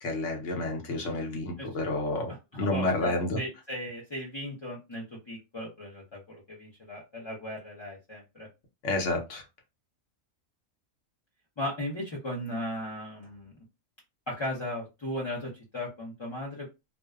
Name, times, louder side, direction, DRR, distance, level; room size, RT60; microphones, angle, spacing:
voice 1, 0.0-3.4 8.8-9.4, left 2 dB, 70° left, 1.1 m, -30 dB
voice 2, 2.5-8.5 11.6-13.5 14.3-16.7, left 1 dB, 35° left, 0.5 m, -37 dB
2.5 x 2.2 x 2.3 m
omnidirectional pair, 1.4 m